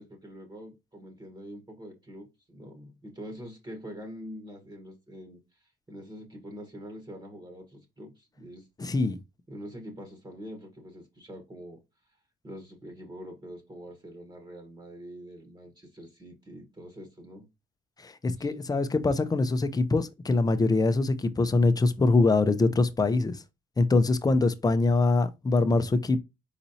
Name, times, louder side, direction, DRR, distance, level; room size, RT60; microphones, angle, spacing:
voice 1, 0.0-8.7 9.5-11.8 12.4-17.5 18.4-18.5 19.1-19.2, equal, 20° right, 1.2 m, -45 dB
voice 2, 8.8-9.2 18.0-23.4 23.8-26.2, left 3 dB, 20° left, 0.6 m, -24 dB
4.2 x 4.0 x 2.8 m
cardioid pair, 90°, 20 cm